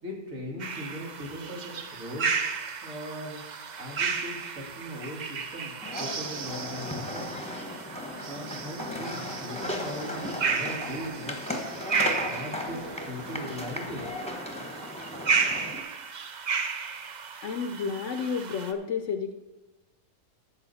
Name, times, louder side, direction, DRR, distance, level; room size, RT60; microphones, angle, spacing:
voice 1, 0.0-2.4 2.8-3.4 3.8-5.7 6.0-7.3 8.2-11.6 12.2-14.0, equal, 75° right, -2 dB, 2.6 m, -39 dB
sound 1, 0.6-18.7, right 5 dB, 45° right, 0.6 m, -33 dB
sound 2, 5.8-15.8, left 1 dB, 5° left, 1.0 m, -36 dB
voice 2, 17.4-19.3, left 6 dB, 65° left, 7 dB, 0.9 m, -31 dB
12.5 x 7.3 x 4.1 m, 1.1 s
omnidirectional pair, 1.4 m